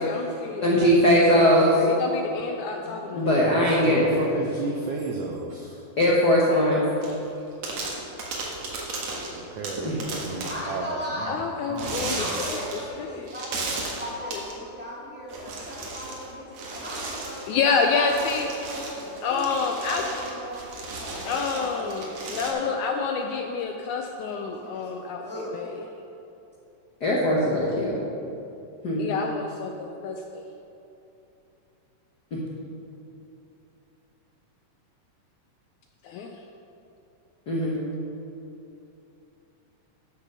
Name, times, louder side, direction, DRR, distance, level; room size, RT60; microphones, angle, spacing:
voice 1, 0.0-1.1 1.4-3.3 4.2-4.7 11.3-13.3 14.2-14.4 17.5-18.5 19.2-20.1 21.2-25.8 29.0-30.4 36.0-36.4, left 5 dB, 85° left, 4 dB, 1.8 m, -29 dB
voice 2, 0.6-1.7 3.1-4.2 6.0-6.8 9.8-10.0 27.0-28.0 28.8-29.1 37.5-37.8, equal, 60° left, -5 dB, 1.0 m, -20 dB
voice 3, 2.6-3.2 10.5-11.4 12.2-18.3 18.7-20.6 20.9-22.7 24.6-24.9 25.2-25.9, equal, 5° right, -7 dB, 1.8 m, -38 dB
voice 4, 3.6-5.8 9.3-10.8 11.2-11.3 11.7-12.4, right 3 dB, 85° right, 0 dB, 1.4 m, -33 dB
sound 1, 7.0-7.3 7.6-10.8 11.8-12.9 13.3-14.5 15.3-16.3 16.5-22.5, right 3 dB, 60° right, 2.6 m, -35 dB
10.0 x 6.9 x 6.8 m, 2.8 s
omnidirectional pair, 3.9 m